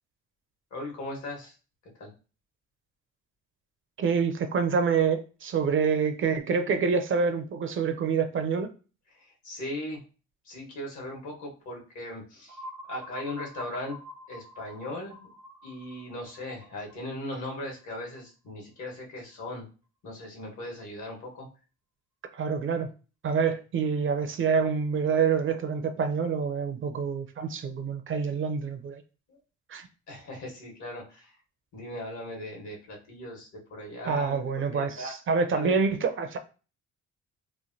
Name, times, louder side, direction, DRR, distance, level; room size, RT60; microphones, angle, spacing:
voice 1, 0.7-1.6 2.0-2.1 9.1-10.0 10.4-12.6 12.9-14.0 14.3-15.2 15.6-19.7 20.0-21.5 29.3-29.4 30.1-31.3 31.7-35.1 35.5-35.7, left 1 dB, 70° left, 1.3 m, -38 dB
voice 2, 4.0-8.7 22.3-22.9 23.2-29.0 29.7-29.9 34.1-36.4, right 5 dB, 45° right, 0.4 m, -27 dB
sound 1, 12.5-18.2, left 1 dB, 75° right, 0.8 m, -46 dB
3.1 x 2.2 x 2.6 m
cardioid pair, 90°, 30 cm